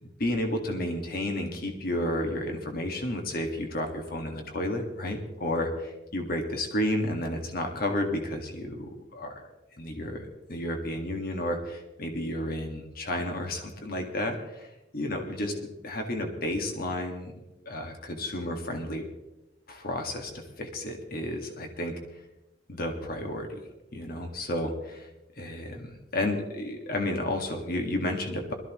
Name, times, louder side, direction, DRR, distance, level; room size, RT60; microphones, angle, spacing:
voice 1, 0.0-9.5 9.8-17.3 17.6-19.0 19.7-22.0 22.7-23.6 23.9-25.1 25.4-28.5, left 1 dB, 55° left, 3 dB, 1.9 m, -32 dB
21.5 x 14.0 x 3.1 m, 0.95 s
head